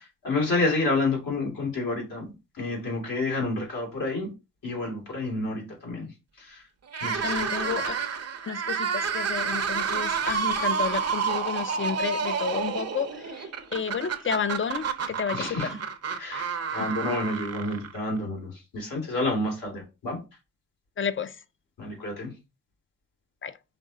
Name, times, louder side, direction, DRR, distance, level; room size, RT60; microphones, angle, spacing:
voice 1, 0.0-2.2 2.6-4.3 4.6-6.1 6.4-6.6 7.0-7.7 15.3-15.7 16.2-20.2 21.8-22.3, left 2 dB, 80° left, 2.1 m, -29 dB
sound 1, 6.9-18.2, right 6 dB, 50° right, 0.7 m, -29 dB
voice 2, 7.2-8.0 8.5-15.7 16.7-16.9 21.0-21.3 23.4-23.5, left 7 dB, 40° left, 0.4 m, -31 dB
5.1 x 3.1 x 2.7 m
cardioid pair, 55°, 33 cm